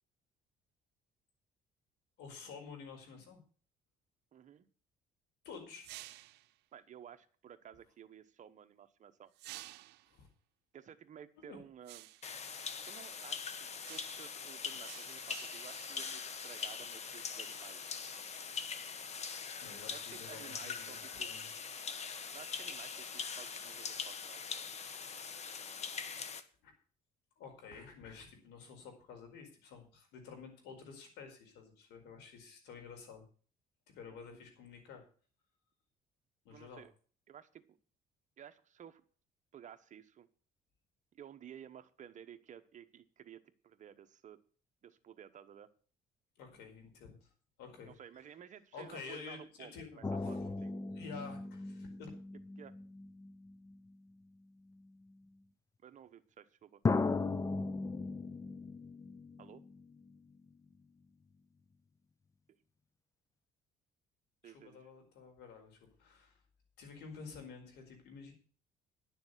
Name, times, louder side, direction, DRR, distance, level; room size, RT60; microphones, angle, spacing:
voice 1, 2.2-3.4 5.4-6.0 10.1-10.3 11.5-11.6 19.6-21.5 26.6-26.7 27.4-33.2 33.9-35.0 36.4-36.8 46.4-47.3 47.6-47.9 48.7-50.3 50.9-52.1 64.4-66.4 66.8-68.3, left 5 dB, 85° left, 3 dB, 4.8 m, -50 dB
voice 2, 4.3-4.7 6.7-9.3 10.7-12.1 12.8-13.5 13.9-17.9 19.9-21.3 22.3-24.4 34.1-34.4 36.5-36.9 37.3-37.8 38.4-39.0 39.5-40.3 41.1-44.4 44.8-45.7 47.8-50.7 52.6-52.8 55.8-56.8 59.4-59.6 64.4-64.9, right 9 dB, 45° right, 10 dB, 1.1 m, -54 dB
sound 1, 5.8-6.5 9.3-10.1 11.8-12.3 13.8-14.4 14.8-17.6, right 17 dB, 85° right, 0.6 m, -53 dB
sound 2, 12.2-26.4, left 6 dB, 40° left, 1.3 m, -42 dB
sound 3, 50.0-54.0 54.8-54.9 56.8-60.2 60.5-60.6, left 3 dB, 20° left, 0.5 m, -37 dB
11.0 x 7.0 x 8.1 m, 0.42 s
cardioid pair, 110°, 17 cm